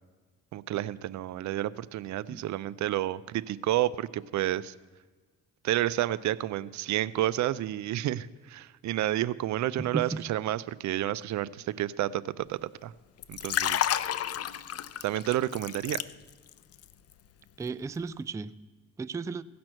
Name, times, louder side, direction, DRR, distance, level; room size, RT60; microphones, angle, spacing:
voice 1, 0.5-4.7 5.6-12.9 13.3-13.9 15.0-16.0, right 13 dB, 70° right, 18 dB, 0.5 m, -30 dB
voice 2, 9.8-10.2 17.6-18.5 19.0-19.4, right 4 dB, 10° right, 15 dB, 0.3 m, -34 dB
Liquid, 13.2-16.5 16.8-17.1, left 11 dB, 55° left, 0.6 m, -31 dB
16.5 x 6.0 x 7.7 m, 1.4 s
cardioid pair, 90°, 30 cm